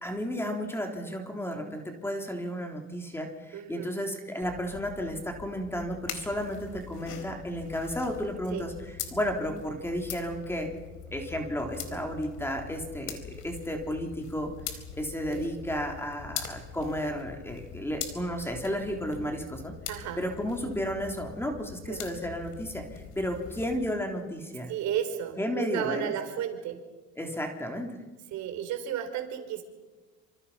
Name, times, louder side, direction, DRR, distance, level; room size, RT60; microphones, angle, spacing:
voice 1, 0.0-8.7 9.1-10.7 11.1-13.2 13.4-14.5 14.9-19.7 20.2-24.7 25.4-26.1 27.2-28.0, equal, 10° left, 3 dB, 3.5 m, -33 dB
voice 2, 3.5-4.0 6.7-6.8 8.5-8.6 11.9-12.0 15.3-15.5 16.7-16.8 19.9-20.2 21.9-22.1 24.7-26.8 28.3-29.6, right 9 dB, 65° right, 6 dB, 4.6 m, -33 dB
sound 1, 4.4-23.9, left 8 dB, 70° left, 4.3 m, -43 dB
28.0 x 26.0 x 5.7 m, 1.2 s
cardioid pair, 125°, 31 cm